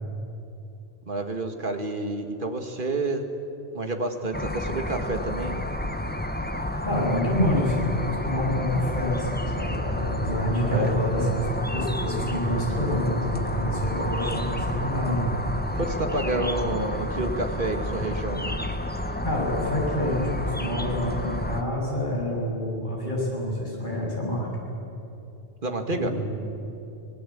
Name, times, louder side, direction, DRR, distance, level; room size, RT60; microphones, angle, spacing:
voice 1, 1.1-3.3 3.7-5.6 10.6-10.9 15.7-18.6 25.6-26.1, right 2 dB, 50° right, 5 dB, 2.1 m, -29 dB
sound 1, 4.3-21.6, left 1 dB, 10° left, 1.2 m, -30 dB
voice 2, 6.8-15.3 19.2-24.5 25.9-26.3, equal, 45° left, -3 dB, 7.2 m, -27 dB
25.5 x 20.0 x 8.7 m, 2.9 s
omnidirectional pair, 1.1 m